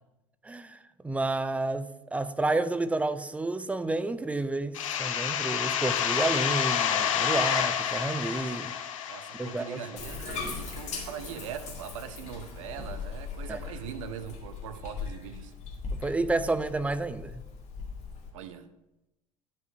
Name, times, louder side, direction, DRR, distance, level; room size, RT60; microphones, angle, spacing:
voice 1, 0.4-8.7 9.4-9.8 13.5-13.6 16.0-17.4, right 2 dB, 5° right, 0.4 m, -30 dB
sound 1, 4.7-10.2, left 9 dB, 65° left, 0.8 m, -29 dB
voice 2, 9.1-15.5 18.3-18.7, right 8 dB, 60° right, 0.8 m, -41 dB
Bathtub (filling or washing), 10.0-18.3, left 5 dB, 40° left, 2.2 m, -39 dB
10.5 x 5.3 x 4.4 m
figure-of-eight pair, 70°, 18 cm